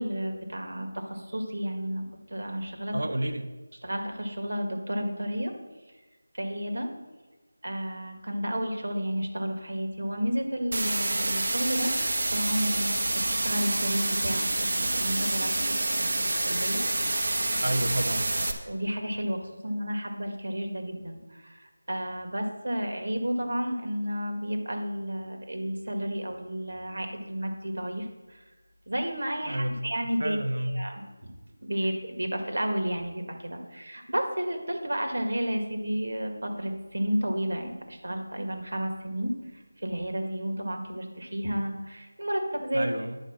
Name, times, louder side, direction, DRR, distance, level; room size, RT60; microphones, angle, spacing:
voice 1, 0.0-2.0 2.3-3.0 3.8-5.5 6.3-6.9 7.6-16.8 18.6-28.4 28.9-30.4 30.6-31.3 31.6-42.9, equal, 70° right, 4 dB, 2.1 m, -32 dB
voice 2, 2.9-3.5 17.6-18.3 29.5-29.8 30.2-30.8 42.7-43.2, right 1 dB, 85° right, 7 dB, 1.1 m, -30 dB
sound 1, 10.7-18.5, right 2 dB, 50° right, 1.3 m, -27 dB
10.0 x 5.1 x 7.5 m, 1.2 s
figure-of-eight pair, 175°, 0 cm